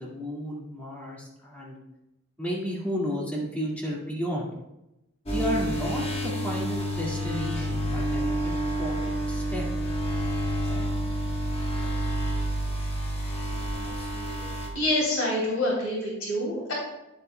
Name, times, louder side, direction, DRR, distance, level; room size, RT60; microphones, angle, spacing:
voice 1, 0.0-1.8 2.4-4.5 5.3-9.6, equal, 5° left, -5 dB, 1.9 m, -33 dB
sound 1, 5.3-14.7, equal, 30° left, 1.2 m, -29 dB
voice 2, 14.7-16.7, left 1 dB, 80° left, -5 dB, 3.1 m, -26 dB
10.0 x 8.3 x 2.2 m, 0.93 s
head